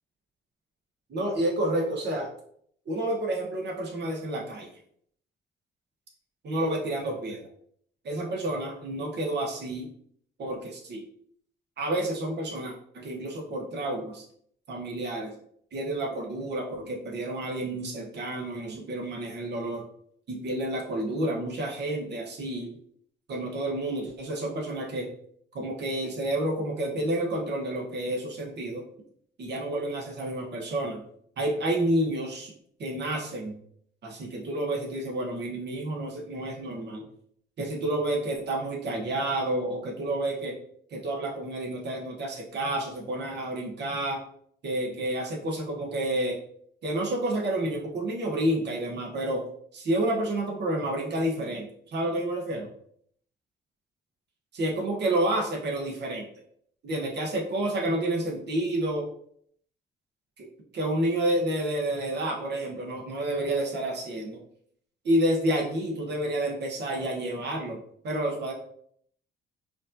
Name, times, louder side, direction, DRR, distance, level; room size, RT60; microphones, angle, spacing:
voice 1, 1.1-2.3 2.9-4.7 6.4-7.4 8.0-9.9 10.4-11.0 11.8-14.2 14.7-15.3 15.7-19.8 20.3-22.7 23.3-25.1 25.5-28.8 29.4-31.0 31.4-32.5 32.8-33.6 34.0-37.0 37.6-40.5 40.9-44.2 44.6-46.4 46.8-49.4 49.7-52.7 54.5-56.3 56.8-59.1 60.4-60.5 60.7-64.4 65.0-68.5, right 1 dB, 60° right, 0 dB, 1.1 m, -29 dB
4.9 x 2.5 x 2.6 m, 0.65 s
cardioid pair, 90°, 20 cm